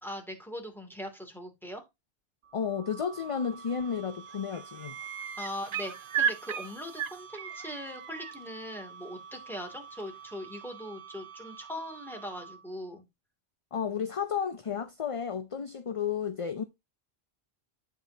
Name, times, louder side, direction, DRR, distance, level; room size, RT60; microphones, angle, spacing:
voice 1, 0.0-1.8 5.4-13.0, equal, ahead, 2.6 m, -40 dB
sound 1, 2.4-12.8, right 7 dB, 85° right, 1.1 m, -49 dB
voice 2, 2.5-5.0 13.7-16.6, left 7 dB, 40° left, 0.5 m, -32 dB
sound 2, 3.6-4.0 4.3-8.3 10.0-10.1, right 7 dB, 55° right, 0.9 m, -34 dB
9.3 x 7.3 x 2.8 m
omnidirectional pair, 1.1 m